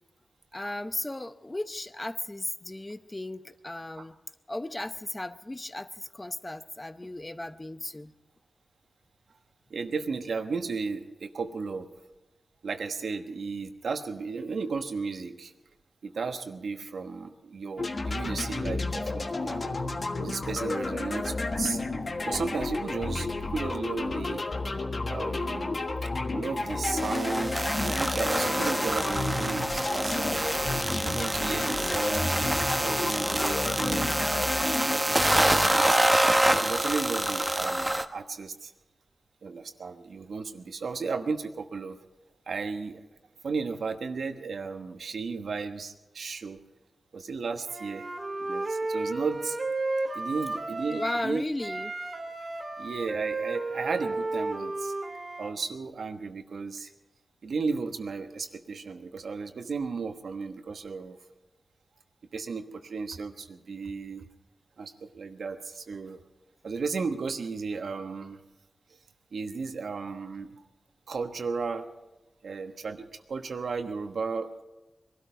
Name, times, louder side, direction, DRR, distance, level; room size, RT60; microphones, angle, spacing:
voice 1, 0.5-4.2 4.5-8.1 50.2-50.3 51.0-51.9, left 1 dB, 20° left, 11 dB, 0.8 m, -35 dB
voice 2, 9.7-11.9 12.6-15.5 16.0-19.8 20.2-21.8 22.2-24.4 25.0-25.8 26.3-30.3 31.0-34.2 34.9-36.0 36.6-38.7 39.4-42.0 42.5-43.0 43.4-46.6 47.1-48.1 48.4-49.6 50.1-51.4 52.8-55.0 55.4-56.9 57.4-61.2 62.3-64.3 64.8-66.2 66.6-68.4 69.3-70.6 71.1-71.9 72.4-74.6, right 4 dB, 75° right, 7 dB, 1.2 m, -34 dB
sound 1, 17.8-35.0, left 3 dB, 45° left, 1.4 m, -31 dB
sound 2, 27.0-38.0, right 1 dB, 10° right, 0.9 m, -26 dB
Wind instrument woodwind instrument, 47.6-51.3 51.6-55.5, right 2 dB, 40° right, 2.4 m, -33 dB
22.0 x 13.0 x 5.1 m, 1.1 s
wide cardioid pair, 80°, 0 cm